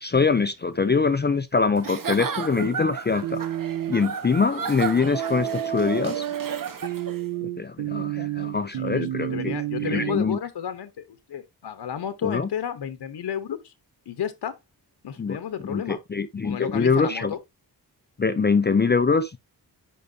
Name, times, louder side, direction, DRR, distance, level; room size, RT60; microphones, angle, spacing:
voice 1, 0.0-3.4 3.9-6.3 7.4-9.5 9.9-10.4 12.2-12.5 15.2-15.4 15.7-17.3 18.2-19.4, left 4 dB, 25° left, 0.4 m, -23 dB
Giggle / Chuckle chortle, 1.8-7.3, right 7 dB, 55° right, 1.1 m, -33 dB
sound 1, 3.2-4.0 5.1-10.2, right 12 dB, 75° right, 0.5 m, -30 dB
voice 2, 8.6-13.7 14.1-14.5 15.0-16.0 16.4-17.4, left 9 dB, 90° left, 0.9 m, -32 dB
10.0 x 4.6 x 2.6 m
wide cardioid pair, 170°, 40 cm